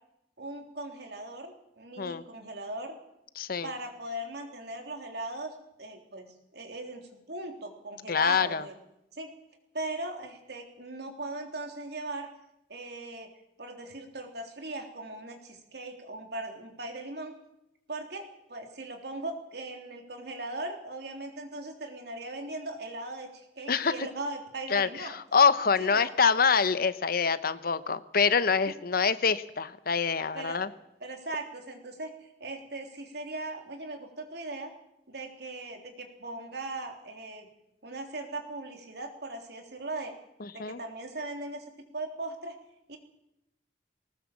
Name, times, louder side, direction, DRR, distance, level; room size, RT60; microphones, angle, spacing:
voice 1, 0.4-3.0 3.6-8.8 9.1-9.3 9.7-12.3 12.7-13.3 13.6-17.4 17.9-25.2 25.8-26.1 28.7-28.8 30.3-30.7 31.0-34.7 35.1-37.5 37.8-40.1 40.5-41.6 41.9-42.6 42.9-43.0, right 2 dB, 65° right, 4 dB, 3.5 m, -39 dB
voice 2, 3.4-3.7 8.1-8.6 23.7-23.9 24.7-30.7 40.4-40.8, left 5 dB, 55° left, 14 dB, 0.9 m, -25 dB
19.5 x 19.5 x 7.4 m, 0.84 s
head